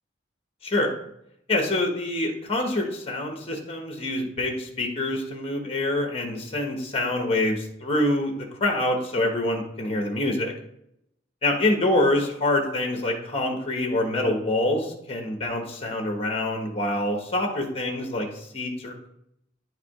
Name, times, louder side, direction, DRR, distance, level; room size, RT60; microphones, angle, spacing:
voice 1, 0.6-0.9 1.5-10.5 11.4-19.1, left 1 dB, 30° left, 3 dB, 1.1 m, -26 dB
10.0 x 4.7 x 2.4 m, 0.78 s
head